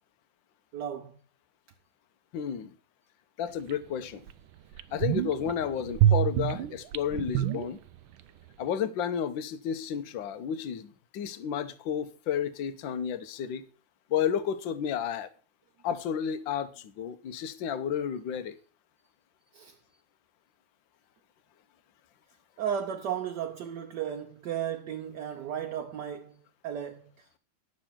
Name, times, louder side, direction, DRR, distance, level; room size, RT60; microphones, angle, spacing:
voice 1, 0.7-1.2 5.0-5.1 19.5-19.8 22.6-27.4, right 9 dB, 65° right, 1.3 m, -35 dB
voice 2, 2.3-2.7 3.4-4.2 4.9-7.8 8.6-13.6 14.1-15.3 15.8-18.6, left 8 dB, 70° left, 1.5 m, -32 dB
sound 1, 3.7-3.8 4.3-4.4 4.7-5.5 5.9-8.2 8.5-8.6, right 11 dB, 85° right, 1.5 m, -26 dB
10.0 x 6.5 x 5.8 m
omnidirectional pair, 2.3 m